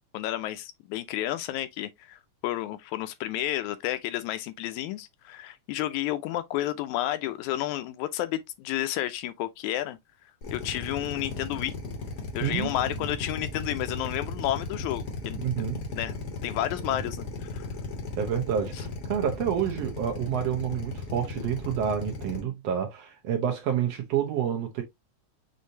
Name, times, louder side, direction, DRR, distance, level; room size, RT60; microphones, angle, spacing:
voice 1, 0.1-10.0 10.5-11.8 12.3-15.6 15.9-16.1 16.4-17.7 18.7-18.8, left 13 dB, 80° left, 2.0 m, -31 dB
Drill, 10.4-22.4, left 4 dB, 60° left, 1.0 m, -36 dB
voice 2, 12.4-12.7 15.4-15.8 16.9-17.0 18.2-24.8, right 9 dB, 70° right, 1.7 m, -29 dB
6.3 x 2.6 x 2.7 m
omnidirectional pair, 3.5 m